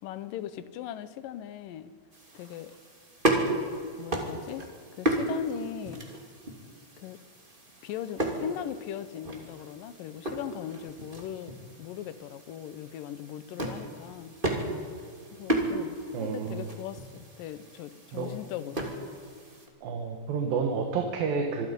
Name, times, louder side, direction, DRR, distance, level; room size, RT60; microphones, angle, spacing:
voice 1, 0.0-1.9 2.3-2.8 3.5-3.7 4.0-4.7 5.0-6.0 7.0-7.2 7.8-14.4 15.3-18.9, left 10 dB, 80° left, 13 dB, 2.5 m, -39 dB
sound 1, 2.1-19.7, right 1 dB, 15° right, 2.4 m, -34 dB
voice 2, 16.1-16.6 18.1-18.3 19.8-21.7, right 5 dB, 85° right, 2 dB, 3.4 m, -30 dB
26.0 x 23.0 x 5.4 m, 2.1 s
omnidirectional pair, 4.0 m